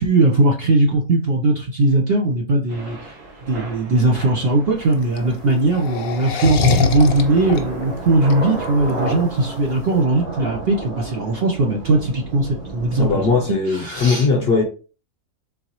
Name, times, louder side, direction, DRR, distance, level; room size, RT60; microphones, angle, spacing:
voice 1, 0.0-3.0 3.5-13.4 13.8-14.3, right 2 dB, 50° right, 0.7 m, -19 dB
Thunder / Rain, 2.7-13.5, right 2 dB, 75° right, 1.7 m, -33 dB
sound 1, 4.8-10.0, left 4 dB, 70° left, 1.2 m, -24 dB
voice 2, 12.9-14.6, left 4 dB, 50° left, 0.8 m, -19 dB
3.9 x 3.8 x 2.9 m
omnidirectional pair, 1.6 m